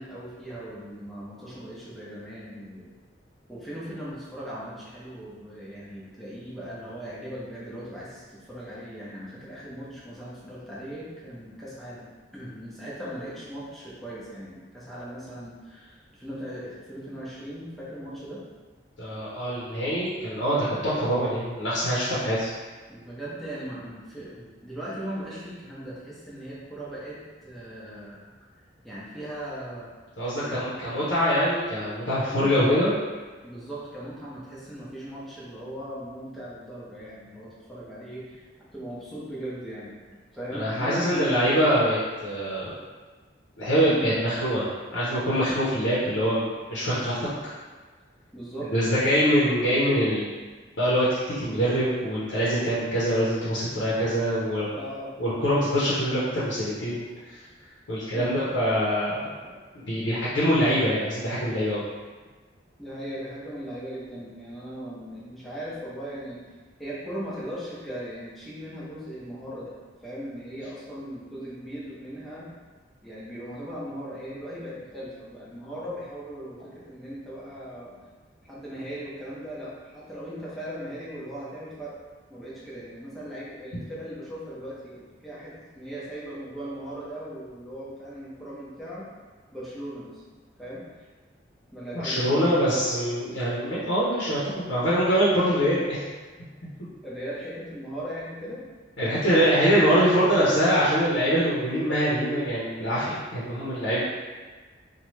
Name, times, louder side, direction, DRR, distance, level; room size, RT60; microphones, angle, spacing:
voice 1, 0.0-2.9 3.5-18.4 22.9-28.2 28.8-29.9 30.2-30.8 32.2-33.0 33.4-38.4 38.7-39.9 40.3-41.4 43.8-44.1 48.3-48.7 49.0-49.2 54.8-55.1 55.7-55.9 58.1-58.5 62.8-66.4 66.8-69.7 70.0-72.5 73.0-78.0 78.4-82.0 82.3-89.1 89.5-90.2 90.6-91.1 91.7-92.7 97.0-98.6 99.0-99.5, equal, ahead, -8 dB, 0.6 m, -38 dB
voice 2, 19.0-22.5 30.2-32.9 40.5-42.7 43.6-47.3 48.7-50.3 50.8-54.8 55.2-57.4 57.9-59.2 59.7-61.8 91.9-96.0 99.0-104.0, equal, 80° left, -9 dB, 0.7 m, -24 dB
3.0 x 2.2 x 3.1 m, 1.4 s
head